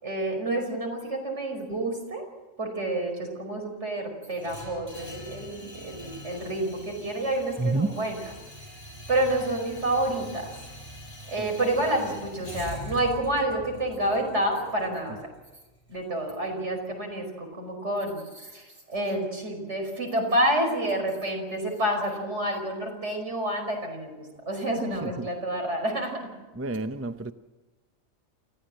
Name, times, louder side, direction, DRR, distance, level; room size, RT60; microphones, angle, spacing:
voice 1, 0.0-2.3 2.6-8.3 9.1-10.5 11.3-15.2 15.9-24.1 24.5-26.1, right 1 dB, 60° right, 5.6 m, -29 dB
sound 1, 4.4-16.4, equal, 25° left, 6.3 m, -44 dB
voice 2, 26.6-27.3, right 2 dB, 20° right, 0.4 m, -28 dB
29.0 x 14.5 x 7.7 m
omnidirectional pair, 1.4 m